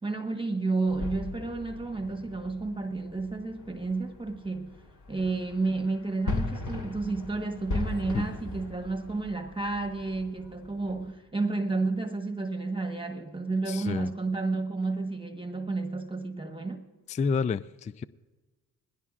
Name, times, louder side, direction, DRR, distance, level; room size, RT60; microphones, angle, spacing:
voice 1, 0.0-4.7 5.1-16.9, right 3 dB, 15° right, 1.3 m, -31 dB
sound 1, 0.9-11.1, left 3 dB, 55° left, 2.9 m, -39 dB
voice 2, 13.7-14.1 17.1-18.0, left 5 dB, 20° left, 0.4 m, -29 dB
20.0 x 16.5 x 2.5 m
supercardioid pair, 60°, 36 cm